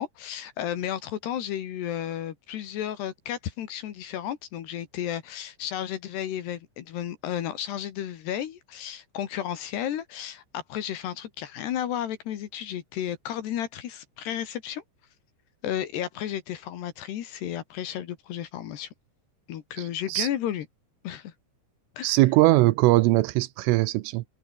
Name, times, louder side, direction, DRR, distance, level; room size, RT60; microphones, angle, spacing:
voice 1, 0.0-14.8 15.6-18.9 19.5-20.7 21.0-21.3 22.0-22.2, left 10 dB, 65° left, 3.4 m, -33 dB
voice 2, 22.0-24.2, right 19 dB, 80° right, 3.3 m, -20 dB
omnidirectional pair, 5.9 m